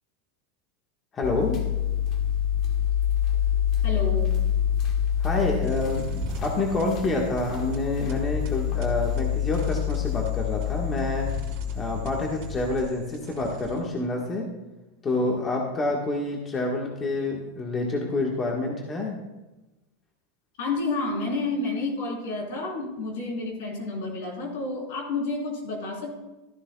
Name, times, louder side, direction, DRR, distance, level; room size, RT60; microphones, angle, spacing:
voice 1, 1.1-1.6 5.2-11.3 11.7-14.5 15.0-19.2, left 2 dB, 25° left, -1 dB, 1.5 m, -28 dB
sound 1, 1.2-12.8, left 10 dB, 40° left, 1.5 m, -27 dB
voice 2, 3.8-4.4 20.6-26.2, left 3 dB, 70° left, -1 dB, 3.9 m, -30 dB
sound 2, 5.6-14.0, right 5 dB, 55° right, 1.8 m, -41 dB
13.0 x 11.0 x 2.3 m, 1.0 s
supercardioid pair, 130°, 0 cm